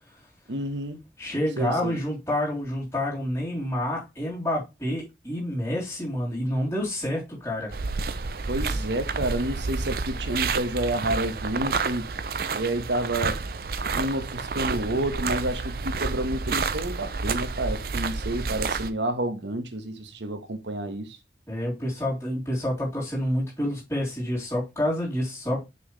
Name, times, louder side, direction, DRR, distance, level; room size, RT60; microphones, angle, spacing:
voice 1, 0.5-1.0 1.6-1.9 8.5-12.0 12.5-13.4 13.9-21.2, right 1 dB, 85° right, 1.4 m, -29 dB
voice 2, 1.2-7.7 21.5-25.6, left 1 dB, 15° left, 3.6 m, -28 dB
sound 1, 7.7-18.9, right 4 dB, 55° right, 0.5 m, -30 dB
6.3 x 5.5 x 3.2 m
head